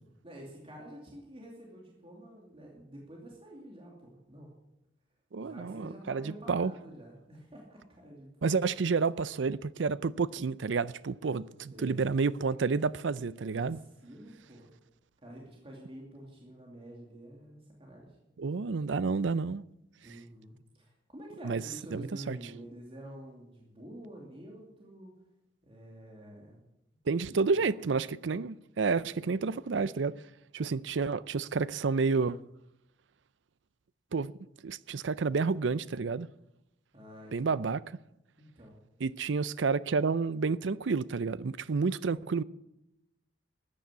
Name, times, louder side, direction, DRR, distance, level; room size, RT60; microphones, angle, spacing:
voice 1, 0.2-4.5 5.4-8.6 11.7-12.1 13.4-14.7 15.2-18.2 20.0-25.2 25.6-26.6 27.2-27.8 36.9-37.6 38.4-38.8, right 1 dB, 30° right, 2.8 m, -48 dB
voice 2, 5.3-6.7 8.4-13.8 18.4-19.6 21.4-21.6 21.9-22.4 27.1-30.2 30.5-32.4 34.1-34.3 34.6-36.3 37.3-37.8 39.0-42.4, right 4 dB, 70° right, 0.5 m, -30 dB
13.5 x 9.9 x 8.2 m
head